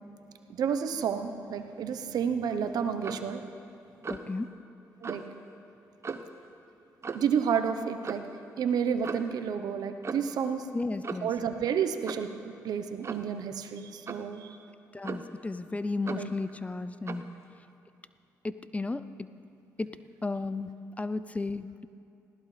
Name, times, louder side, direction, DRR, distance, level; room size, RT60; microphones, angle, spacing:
voice 1, 0.1-3.4 5.0-5.2 7.1-8.2 8.6-10.7 11.2-12.3 12.6-14.6 16.1-16.3, right 7 dB, 70° right, 8 dB, 0.9 m, -30 dB
Clock, 3.0-3.3 4.0-4.3 5.0-5.3 6.0-6.4 7.0-7.3 8.0-8.3 9.0-9.4 10.0-10.4 11.0-11.4 12.1-12.3 13.0-13.3 14.1-14.3 15.0-15.4 16.1-16.3 17.1-17.3, right 4 dB, 40° right, 0.9 m, -38 dB
voice 2, 4.1-4.5 10.7-11.3 14.9-17.2 18.4-19.3 19.8-19.9 20.2-20.7 21.0-21.9, left 3 dB, 20° left, 13 dB, 0.5 m, -33 dB
20.5 x 15.5 x 3.3 m, 2.8 s
supercardioid pair, 55°, 7 cm